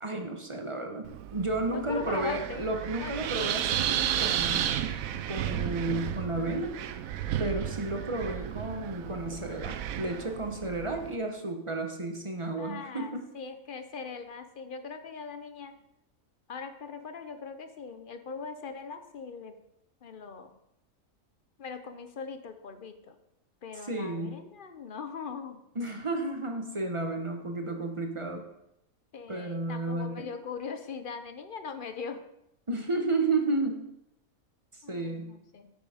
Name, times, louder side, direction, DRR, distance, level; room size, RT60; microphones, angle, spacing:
voice 1, 0.0-4.7 5.3-6.7 7.4-13.2 23.9-24.4 25.8-28.4 29.3-30.3 32.7-33.9 34.7-35.3, right 2 dB, 25° right, 4 dB, 0.9 m, -32 dB
Wind, 1.0-11.2, right 10 dB, 75° right, 1.0 m, -33 dB
voice 2, 1.7-2.6 3.0-3.3 12.6-15.8 16.5-19.6 20.0-20.6 21.6-23.2 23.6-25.6 29.1-32.2 34.8-35.7, left 5 dB, 45° left, 8 dB, 0.8 m, -40 dB
8.7 x 6.1 x 4.9 m, 0.84 s
omnidirectional pair, 1.5 m